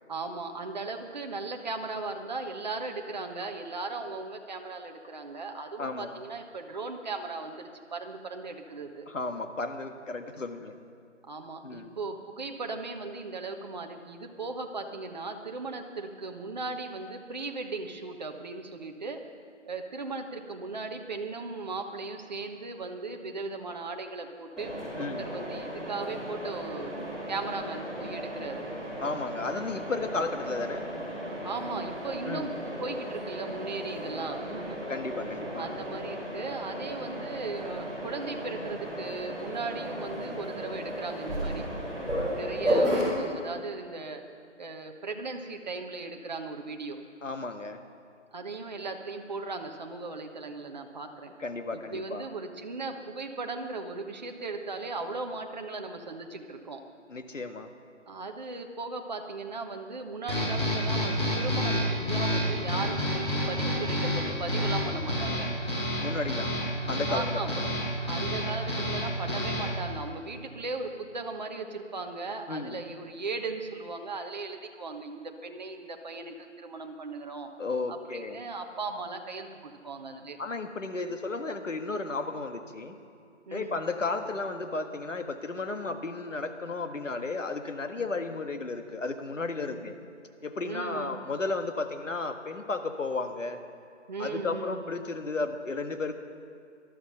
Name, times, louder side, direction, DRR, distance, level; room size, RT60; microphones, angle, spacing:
voice 1, 0.1-9.1 11.3-19.2 19.7-26.9 27.3-28.6 31.4-32.5 32.8-34.8 35.6-41.7 42.3-44.2 44.6-47.0 48.3-51.3 51.7-56.8 58.0-65.5 67.1-67.6 68.1-77.5 77.9-80.4 83.5-83.8 88.0-88.1 89.7-89.8 90.6-91.2 94.1-94.8, right 3 dB, 35° right, 4 dB, 1.2 m, -37 dB
voice 2, 5.8-6.2 9.1-10.7 11.6-11.9 25.0-25.3 29.0-30.8 32.2-32.5 34.9-35.7 47.2-47.8 51.4-52.2 57.1-57.7 66.0-66.5 66.9-67.3 67.6-67.7 72.5-72.8 77.6-78.4 80.4-83.0 83.5-89.9 90.4-93.6 94.2-96.1, left 3 dB, 80° left, 6 dB, 1.7 m, -33 dB
Mechanisms, 24.6-43.1, equal, ahead, 2.0 m, -34 dB
sound 1, 60.3-69.8, equal, 20° left, 5.3 m, -29 dB
19.0 x 13.0 x 5.7 m, 2.4 s
figure-of-eight pair, 165°, 37 cm